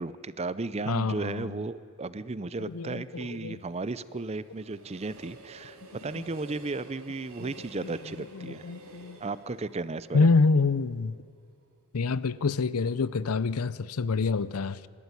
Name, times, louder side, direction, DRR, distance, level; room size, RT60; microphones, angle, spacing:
voice 1, 0.0-8.7 9.2-10.3, right 3 dB, 30° right, 0.5 m, -35 dB
voice 2, 0.9-1.6 2.6-3.6 7.4-7.5 7.8-7.9 8.3-9.2 10.1-11.1 11.9-14.8, left 4 dB, 85° left, 0.6 m, -27 dB
Train, 2.6-11.6 12.0-12.1, right 2 dB, 70° right, 2.8 m, -51 dB
26.0 x 12.5 x 9.7 m
head